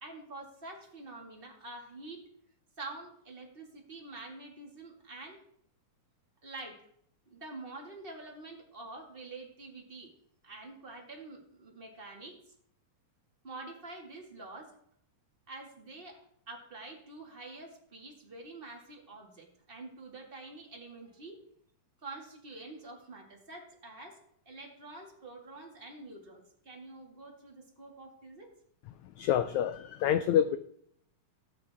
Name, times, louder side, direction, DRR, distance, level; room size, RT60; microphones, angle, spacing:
voice 1, 0.0-2.2 2.8-5.4 6.4-6.9 7.3-10.1 10.4-12.5 13.4-14.7 15.5-21.4 22.0-28.5, right 2 dB, 20° right, 0 dB, 1.5 m, -47 dB
voice 2, 28.9-30.6, left 10 dB, 85° left, 10 dB, 1.6 m, -28 dB
17.5 x 8.5 x 3.5 m, 0.68 s
omnidirectional pair, 3.9 m